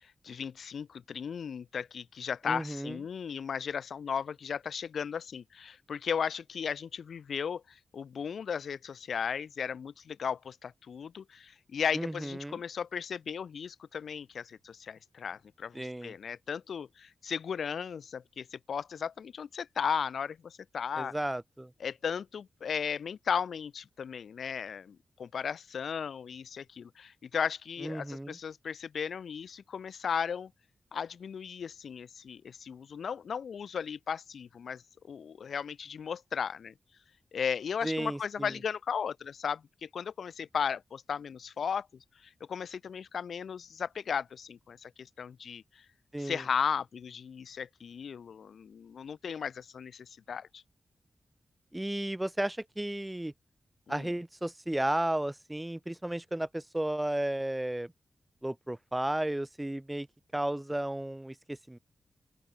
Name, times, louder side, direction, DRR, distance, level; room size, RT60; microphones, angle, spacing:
voice 1, 0.0-21.1 21.8-30.5 30.9-36.7 37.3-41.9 42.2-45.8 46.2-50.6 53.9-54.1, left 7 dB, 85° left, 1.3 m, -36 dB
voice 2, 2.4-3.0 11.9-12.6 15.7-16.1 20.9-21.7 27.8-28.4 37.8-38.5 46.1-46.4 51.7-53.3 53.9-57.9 58.4-60.1 60.3-61.8, right 1 dB, 10° right, 1.0 m, -33 dB
open air
wide cardioid pair, 125°, 0 cm